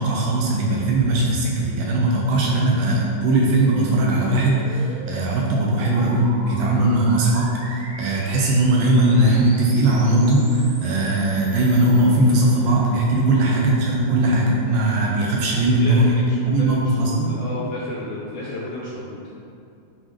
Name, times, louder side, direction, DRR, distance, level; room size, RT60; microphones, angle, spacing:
voice 1, 0.0-16.1 16.4-17.3, right 2 dB, 80° right, -2 dB, 2.3 m, -19 dB
sound 1, 0.7-12.1, equal, 60° right, 1.3 m, -38 dB
voice 2, 15.5-19.3, left 2 dB, 75° left, -7 dB, 1.8 m, -33 dB
9.5 x 4.4 x 3.2 m, 2.5 s
omnidirectional pair, 4.5 m